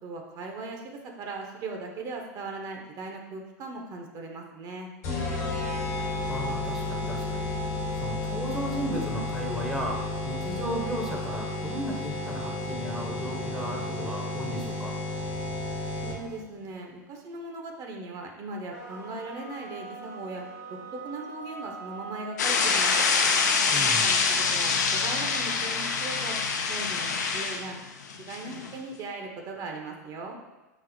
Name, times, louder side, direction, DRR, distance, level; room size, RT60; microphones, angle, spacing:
voice 1, 0.0-4.9 16.0-20.4 20.7-22.9 23.8-26.4 26.7-27.8 28.3-30.4, right 3 dB, 45° right, 2 dB, 0.6 m, -38 dB
sound 1, 5.0-16.4, left 2 dB, 65° left, 1.2 m, -32 dB
voice 2, 6.3-7.5 7.9-15.0 23.7-24.2, equal, 5° right, -1 dB, 0.6 m, -35 dB
sound 2, 18.7-23.3, right 3 dB, 80° right, 1.1 m, -43 dB
sound 3, 22.4-28.7, left 5 dB, 80° left, 0.4 m, -25 dB
5.8 x 2.0 x 2.6 m, 1.1 s
hypercardioid pair, 95°, 9 cm